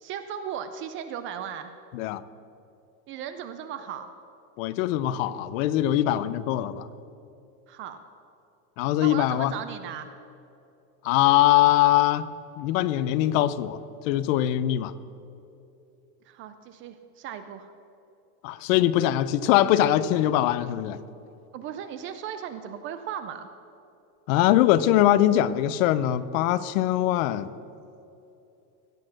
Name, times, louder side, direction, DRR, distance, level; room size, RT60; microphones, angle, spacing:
voice 1, 0.0-1.7 3.1-4.1 7.7-8.0 9.0-10.1 16.2-17.7 21.5-23.5, right 9 dB, 30° right, 9 dB, 0.4 m, -36 dB
voice 2, 4.6-6.9 8.8-9.5 11.0-12.3 12.6-14.9 18.4-21.0 24.3-27.5, left 13 dB, 60° left, 16 dB, 0.6 m, -22 dB
16.0 x 6.6 x 6.4 m, 2.8 s
supercardioid pair, 135°, 46 cm